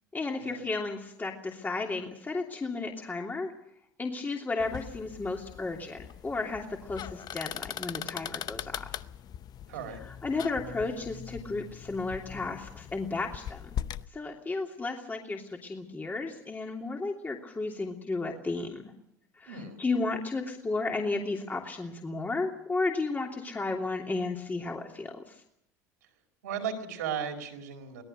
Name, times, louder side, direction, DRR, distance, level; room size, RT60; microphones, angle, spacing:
voice 1, 0.1-3.5 4.0-8.9 10.0-13.7 14.1-18.9 19.4-25.4, left 3 dB, 20° left, 1 dB, 2.9 m, -33 dB
sound 1, 4.6-14.1, left 10 dB, 50° left, 0.8 m, -41 dB
voice 2, 9.7-10.0 19.5-19.8 26.4-28.0, right 7 dB, 85° right, 5 dB, 4.6 m, -36 dB
24.5 x 18.0 x 6.6 m, 0.77 s
hypercardioid pair, 75°, 9 cm